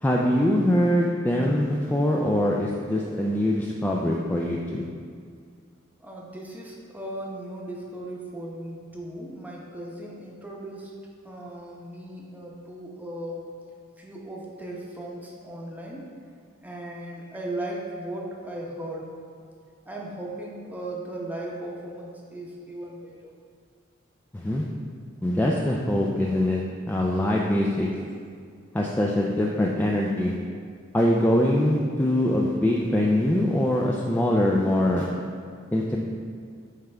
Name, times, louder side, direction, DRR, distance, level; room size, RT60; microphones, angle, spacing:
voice 1, 0.0-4.8 24.3-24.6 25.2-27.9 28.7-30.3 30.9-35.1 35.7-36.0, left 1 dB, 10° left, -2 dB, 0.3 m, -23 dB
voice 2, 6.0-11.0 11.2-13.4 14.0-16.1 16.6-19.1 19.9-23.3, right 1 dB, 10° right, -3 dB, 0.8 m, -37 dB
8.9 x 3.5 x 3.3 m, 2.1 s
head